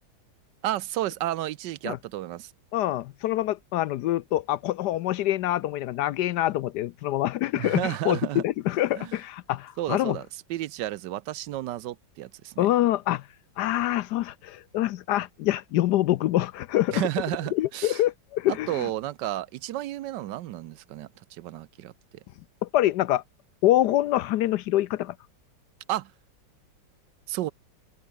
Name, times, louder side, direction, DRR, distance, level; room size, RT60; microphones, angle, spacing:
voice 1, 0.6-2.5 7.6-8.4 9.0-9.2 9.8-12.7 16.9-18.0 18.5-21.9 25.9-26.1 27.3-27.5, right 14 dB, 75° right, 1.2 m, -32 dB
voice 2, 2.7-10.2 12.6-13.2 13.6-17.0 17.5-18.9 22.6-23.2 23.6-25.1, left 14 dB, 70° left, 1.1 m, -25 dB
omnidirectional pair, 2.0 m